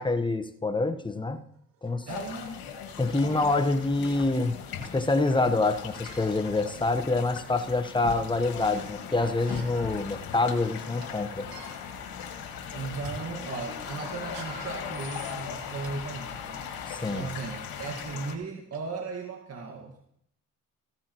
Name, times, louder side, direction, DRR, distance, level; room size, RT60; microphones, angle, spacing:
voice 1, 0.0-1.4 1.8-2.1 3.0-11.5 16.9-17.3, left 2 dB, 15° left, 8 dB, 1.1 m, -26 dB
sound 1, 1.1-1.2 1.8-2.3 2.9-3.0 3.3-3.5 4.8-4.9 5.9-6.3 7.1-7.2 7.6-8.3 9.3-9.9 10.3-10.4 10.8-11.1 11.4-11.7 12.3-12.5 12.9-13.1 14.1-15.9 16.5-16.7 17.6-17.7 18.0-18.1 18.7-18.8, right 6 dB, 75° right, 2.4 m, -48 dB
sound 2, 2.1-18.3, left 7 dB, 80° left, 1.8 m, -39 dB
voice 2, 2.1-2.6 12.7-16.6 17.1-20.2, right 4 dB, 45° right, 1 dB, 1.9 m, -37 dB
15.5 x 13.0 x 3.1 m, 0.73 s
cardioid pair, 80°, 36 cm